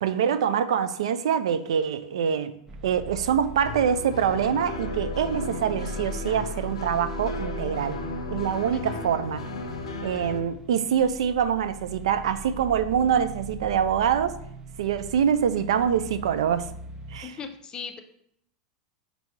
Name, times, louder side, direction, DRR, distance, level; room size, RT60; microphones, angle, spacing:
voice 1, 0.0-2.5 2.8-8.0 8.3-9.4 10.0-14.3 14.8-16.7 17.1-17.3, right 8 dB, 80° right, 12 dB, 0.3 m, -25 dB
sound 1, 2.7-17.2, right 1 dB, 20° right, 0.6 m, -40 dB
sound 2, 3.6-10.4, left 3 dB, 90° left, 0.5 m, -35 dB
voice 2, 17.2-18.0, left 6 dB, 30° left, 6 dB, 0.5 m, -38 dB
4.5 x 2.7 x 4.2 m, 0.71 s
hypercardioid pair, 100°, 3 cm